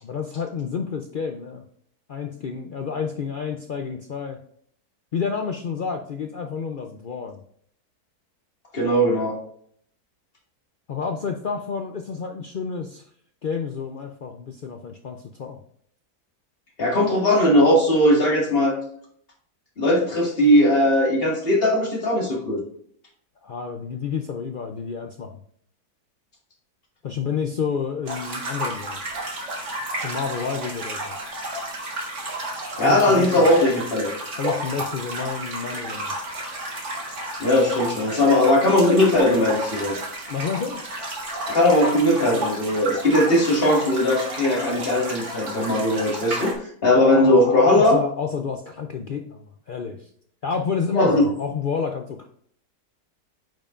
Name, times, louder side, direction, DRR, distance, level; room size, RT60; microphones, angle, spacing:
voice 1, 0.0-1.6 2.1-4.4 5.1-7.4 10.9-13.0 13.4-15.6 23.4-25.4 27.0-29.0 30.0-31.1 32.8-33.5 34.4-36.1 40.3-40.8 46.9-50.1 50.4-52.3, left 6 dB, 70° left, 4 dB, 0.4 m, -29 dB
voice 2, 8.7-9.4 16.8-18.7 19.8-22.6 32.8-34.1 37.4-40.0 41.5-46.5 46.8-48.0 50.9-51.3, left 1 dB, 40° left, -2 dB, 2.1 m, -19 dB
sound 1, 28.1-46.5, right 1 dB, 50° right, 1.8 m, -32 dB
8.9 x 5.5 x 2.5 m, 0.63 s
omnidirectional pair, 1.6 m